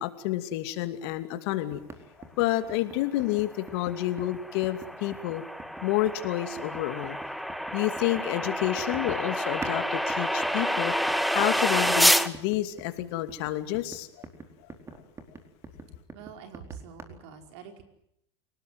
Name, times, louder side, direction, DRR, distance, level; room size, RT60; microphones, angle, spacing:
voice 1, 0.0-1.8 2.4-5.4 5.8-7.2 7.7-11.0 11.3-14.1, left 14 dB, 65° left, 8 dB, 2.7 m, -29 dB
sound 1, 1.7-9.8 10.1-17.0, right 3 dB, 20° right, 4.3 m, -45 dB
sound 2, 3.6-12.3, equal, ahead, 1.3 m, -28 dB
voice 2, 16.1-17.8, right 7 dB, 70° right, 6 dB, 5.0 m, -45 dB
28.0 x 18.5 x 9.4 m, 0.76 s
supercardioid pair, 110°, 15 cm